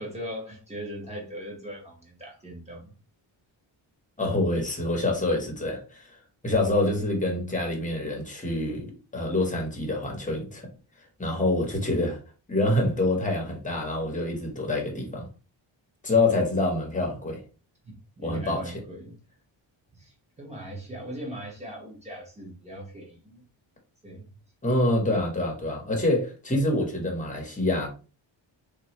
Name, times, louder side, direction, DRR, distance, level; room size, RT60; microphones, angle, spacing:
voice 1, 0.0-2.9 17.8-19.2 19.9-23.4 24.0-24.3, equal, 15° right, 1.3 m, -39 dB
voice 2, 4.2-6.1 6.4-8.9 9.1-10.6 11.2-12.2 12.5-15.3 16.0-17.4 18.2-18.8 24.6-27.9, left 2 dB, 15° left, 1.0 m, -26 dB
3.6 x 3.0 x 2.9 m
wide cardioid pair, 170°, 48 cm